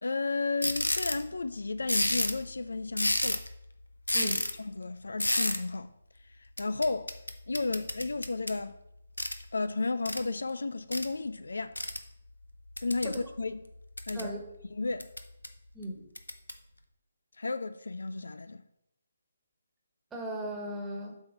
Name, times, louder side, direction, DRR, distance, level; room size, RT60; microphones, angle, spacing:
voice 1, 0.0-3.4 4.2-4.3 4.6-5.9 6.6-7.1 7.5-8.8 9.5-11.8 12.8-13.7 14.1-14.3 14.8-15.1 17.4-18.6, left 3 dB, 70° left, 0.4 m, -33 dB
sound 1, 0.6-1.2 1.9-2.4 2.9-3.5 4.1-4.5 5.2-5.6 6.6-8.6 9.2-9.4 10.1-10.2 10.9-11.1 11.8-12.0 12.8-13.2 13.7-14.3 15.0-15.5 16.2-16.5, left 1 dB, 85° left, 0.8 m, -30 dB
voice 2, 20.1-21.2, right 1 dB, 10° right, 1.4 m, -37 dB
7.8 x 3.6 x 5.8 m
figure-of-eight pair, 145°, 0 cm